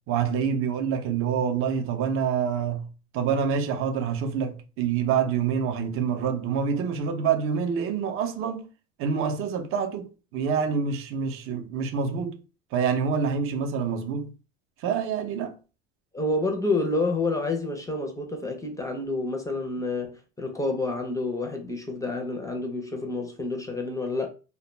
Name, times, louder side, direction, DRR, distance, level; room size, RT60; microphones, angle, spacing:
voice 1, 0.1-2.9 3.1-8.6 9.0-12.4 12.7-14.3 14.8-15.5, right 6 dB, 40° right, 0.5 m, -26 dB
voice 2, 16.1-24.3, left 2 dB, 10° left, 0.4 m, -29 dB
2.1 x 2.1 x 3.1 m
supercardioid pair, 105°, 33 cm